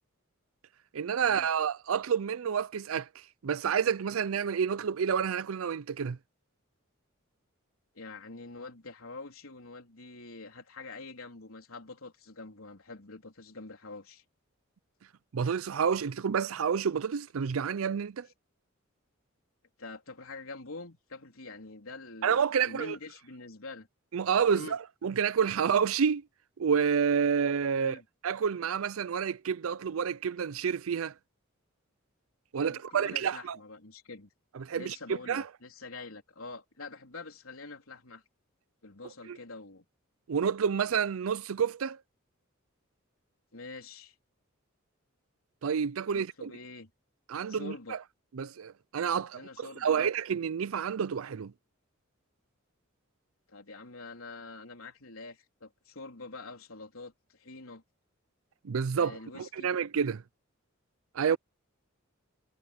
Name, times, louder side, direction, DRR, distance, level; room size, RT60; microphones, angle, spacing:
voice 1, 0.9-6.2 15.3-18.3 22.2-23.0 24.1-26.2 26.6-27.9 28.2-31.1 32.5-33.6 34.6-35.0 35.3-35.5 39.3-39.4 40.3-42.0 45.6-46.5 47.3-48.0 48.3-51.5 58.6-60.2 61.1-61.4, right 7 dB, 75° right, 0.5 m, -29 dB
voice 2, 7.9-14.2 19.8-23.9 24.5-24.8 27.8-28.0 32.6-34.3 34.7-38.2 38.8-39.8 43.5-44.1 46.1-46.9 47.5-48.0 49.3-50.1 53.5-57.8 58.9-59.7, left 3 dB, 85° left, 3.7 m, -45 dB
head